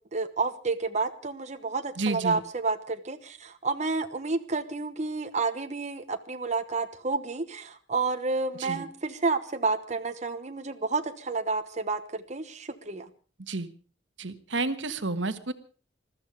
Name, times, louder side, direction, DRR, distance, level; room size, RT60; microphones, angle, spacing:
voice 1, 0.1-13.0, right 4 dB, 40° right, 7 dB, 1.1 m, -30 dB
voice 2, 2.0-2.4 8.5-8.8 13.5-13.7 14.2-15.5, right 3 dB, 80° right, 11 dB, 1.4 m, -30 dB
21.0 x 13.5 x 5.0 m, 0.39 s
head